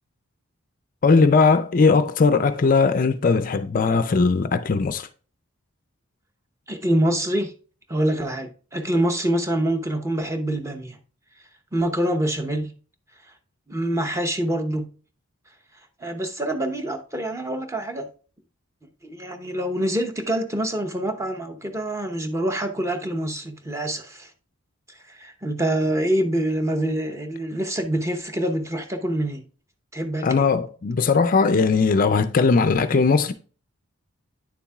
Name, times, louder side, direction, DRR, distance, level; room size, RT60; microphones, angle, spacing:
voice 1, 1.0-5.1 30.2-33.3, left 4 dB, 40° left, 0.4 m, -19 dB
voice 2, 6.7-7.5 7.9-11.0 11.7-12.7 13.7-14.9 16.0-18.1 19.0-24.3 24.9-29.4 29.9-30.5, right 1 dB, 15° right, 0.7 m, -25 dB
9.4 x 7.0 x 2.3 m
head